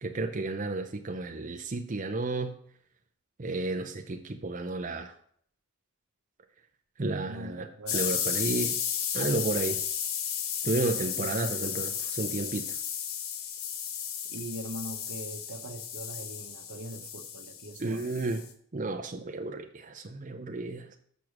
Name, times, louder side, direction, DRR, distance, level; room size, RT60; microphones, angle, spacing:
voice 1, 0.0-2.6 3.4-5.1 7.0-8.8 9.1-9.8 10.6-12.8 17.8-18.5 18.7-21.0, right 2 dB, 35° right, 4 dB, 0.5 m, -32 dB
voice 2, 7.2-8.2 10.7-11.3 11.6-11.7 14.3-18.4, right 1 dB, 70° right, 7 dB, 0.9 m, -42 dB
sound 1, 7.9-18.5, left 8 dB, 75° left, 0.9 m, -34 dB
6.8 x 6.1 x 6.2 m, 0.63 s
head